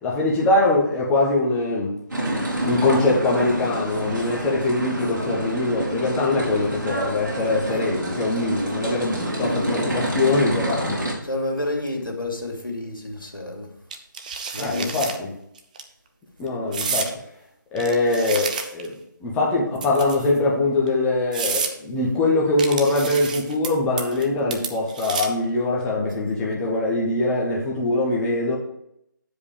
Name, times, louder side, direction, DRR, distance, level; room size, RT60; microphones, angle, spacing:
voice 1, 0.0-1.9 2.6-11.0 14.6-15.3 16.4-17.1 17.7-18.9 19.2-28.6, left 2 dB, 10° left, -4 dB, 1.3 m, -22 dB
sound 1, 2.1-11.1, right 1 dB, 60° right, 3.5 m, -28 dB
voice 2, 11.2-13.7 14.5-15.0, left 2 dB, 85° left, 1 dB, 2.5 m, -29 dB
sound 2, 13.9-15.2 15.6-15.8 16.7-17.1 17.8-18.9 19.8-20.4 20.9-21.0 21.3-21.7 22.6-23.7 24.0-24.3 24.5-25.4, right 5 dB, 25° right, 0.6 m, -29 dB
9.7 x 5.1 x 5.0 m, 0.76 s
figure-of-eight pair, 150°, 11 cm